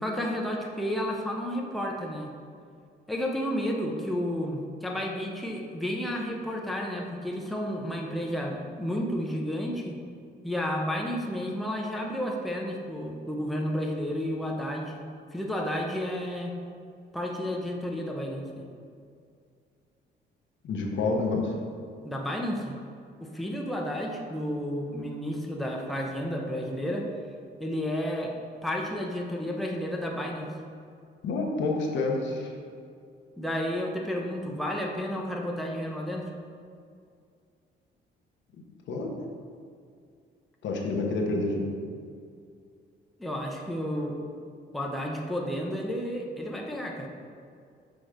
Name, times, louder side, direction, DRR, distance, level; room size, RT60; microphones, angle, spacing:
voice 1, 0.0-2.3 3.1-10.0 10.4-15.0 15.3-16.5 17.1-18.6 22.0-22.7 23.2-27.1 27.6-28.4 28.6-30.5 33.4-36.3 43.2-44.2 44.7-47.1, equal, ahead, -1 dB, 0.7 m, -31 dB
voice 2, 20.6-21.5 31.2-32.5 38.9-39.1 40.6-41.7, left 3 dB, 70° left, 0 dB, 1.0 m, -28 dB
6.2 x 3.0 x 5.0 m, 2.3 s
cardioid pair, 90°, 20 cm